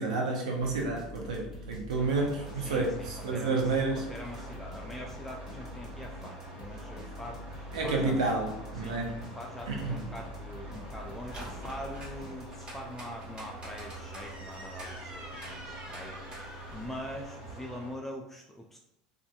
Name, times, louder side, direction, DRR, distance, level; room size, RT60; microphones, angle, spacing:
voice 1, 0.0-4.1 7.7-9.2 9.7-10.0, right 3 dB, 80° right, 0 dB, 0.6 m, -30 dB
sound 1, 0.6-12.8, left 1 dB, 15° right, 1.3 m, -46 dB
sound 2, 1.9-17.9, right 1 dB, 45° right, 1.4 m, -46 dB
voice 2, 2.6-8.2 8.8-9.0 9.3-18.8, equal, 5° left, -1 dB, 0.4 m, -43 dB
sound 3, 10.7-17.3, right 1 dB, 30° right, 1.2 m, -46 dB
2.6 x 2.4 x 2.3 m, 0.86 s
hypercardioid pair, 80°, 4 cm